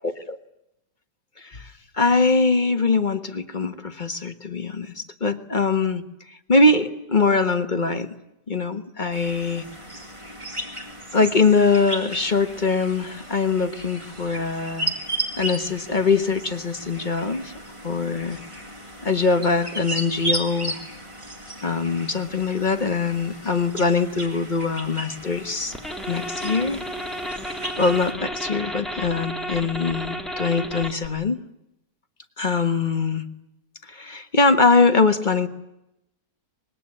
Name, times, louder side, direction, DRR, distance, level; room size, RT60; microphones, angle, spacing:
voice 1, 0.0-0.4 1.4-8.1 8.5-9.6 11.1-14.9 15.4-17.5 17.8-18.4 19.0-20.8 21.6-25.7 26.1-26.8 27.8-31.4 32.4-33.2 33.9-35.5, left 4 dB, 30° left, 9 dB, 1.4 m, -22 dB
sound 1, 9.1-28.1, right 1 dB, 15° right, 3.6 m, -35 dB
sound 2, 25.7-31.1, equal, ahead, 2.2 m, -32 dB
25.0 x 21.0 x 9.9 m, 0.86 s
omnidirectional pair, 1.8 m